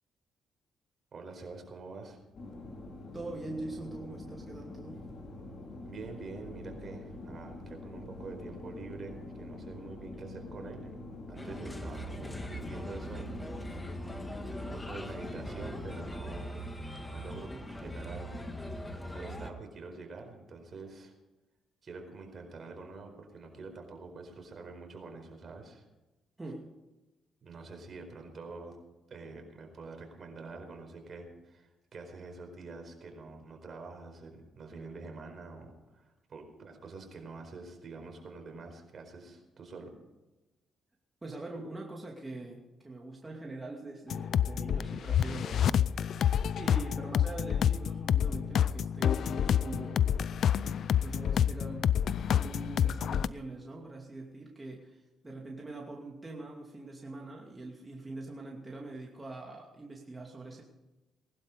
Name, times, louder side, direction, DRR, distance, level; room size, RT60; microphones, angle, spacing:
voice 1, 1.1-2.2 5.8-11.0 11.3-13.4 14.5-16.7 17.1-18.4 19.1-21.1 21.8-25.9 27.4-28.8 29.1-39.9, right 3 dB, 45° right, 4 dB, 4.5 m, -46 dB
sound 1, 2.3-16.2, left 2 dB, 50° left, 5.0 m, -45 dB
voice 2, 3.1-5.0 17.5-17.6 26.4-26.7 41.2-46.1 46.6-50.1 50.7-52.0 52.3-60.6, right 2 dB, 20° right, -1 dB, 2.5 m, -43 dB
Bird, 11.4-19.5, equal, 15° left, 1.9 m, -41 dB
sound 2, 44.1-53.3, left 9 dB, 65° left, 0.5 m, -28 dB
19.5 x 11.5 x 5.2 m, 1.0 s
cardioid pair, 90°, 0 cm